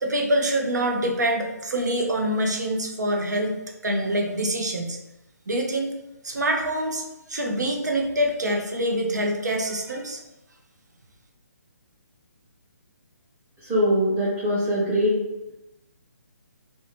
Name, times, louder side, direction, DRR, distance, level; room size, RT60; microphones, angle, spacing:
voice 1, 0.0-3.6 3.8-5.0 5.5-5.9 6.2-7.0 7.3-10.2, right 1 dB, 85° right, 2 dB, 0.6 m, -25 dB
voice 2, 13.6-15.2, equal, 15° right, -9 dB, 0.6 m, -22 dB
2.6 x 2.2 x 3.0 m, 0.97 s
hypercardioid pair, 150°, 9 cm